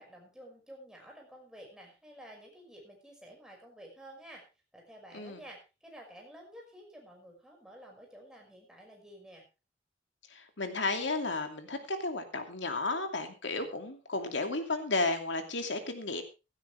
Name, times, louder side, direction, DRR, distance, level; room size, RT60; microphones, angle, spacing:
voice 1, 0.0-4.4 4.7-9.4, equal, 5° right, 0 dB, 5.8 m, -51 dB
voice 2, 10.3-16.2, left 3 dB, 75° left, 6 dB, 2.5 m, -33 dB
16.0 x 13.0 x 3.4 m, 0.29 s
head